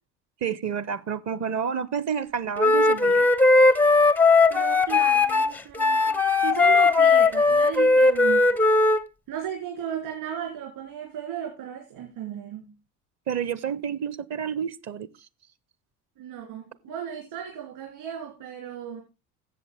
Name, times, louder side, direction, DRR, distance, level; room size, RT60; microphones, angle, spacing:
voice 1, 0.4-3.3 13.3-15.1, right 7 dB, 35° right, 0.7 m, -29 dB
Wind instrument woodwind instrument, 2.6-9.0, left 3 dB, 5° left, 0.4 m, -18 dB
voice 2, 4.5-8.5 9.3-12.7 16.2-19.0, right 9 dB, 55° right, 3.1 m, -35 dB
13.5 x 7.6 x 3.5 m
figure-of-eight pair, 65°, 46 cm